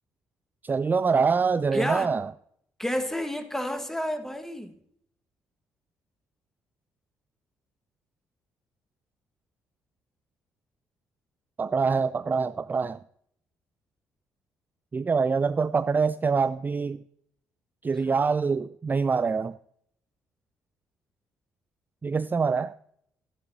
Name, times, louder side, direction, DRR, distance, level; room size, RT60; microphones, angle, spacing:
voice 1, 0.6-2.3 11.6-13.0 14.9-17.0 17.8-19.6 22.0-22.8, right 5 dB, 25° right, 14 dB, 0.3 m, -25 dB
voice 2, 1.7-2.1 2.8-4.8 18.1-18.2, equal, 5° left, 7 dB, 1.5 m, -30 dB
13.0 x 10.5 x 2.7 m, 0.71 s
figure-of-eight pair, 45°, 8 cm